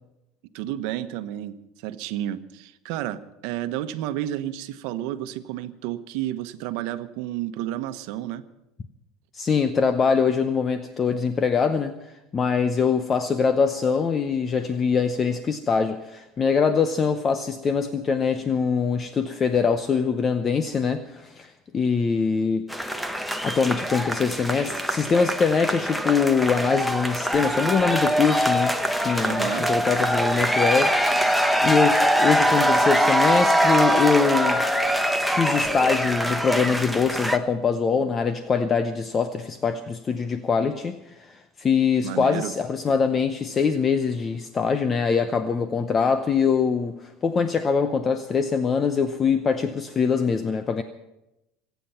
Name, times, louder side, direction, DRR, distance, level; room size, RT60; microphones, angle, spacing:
voice 1, 0.5-8.4 29.2-29.7 42.0-42.5, right 12 dB, 70° right, 11 dB, 1.1 m, -31 dB
voice 2, 9.3-22.7 23.4-30.9 31.3-34.6 35.3-50.8, left 5 dB, 25° left, 9 dB, 0.8 m, -23 dB
sound 1, 22.7-37.4, equal, ahead, 0.9 m, -23 dB
25.5 x 9.3 x 5.7 m, 0.90 s
cardioid pair, 140°, 0 cm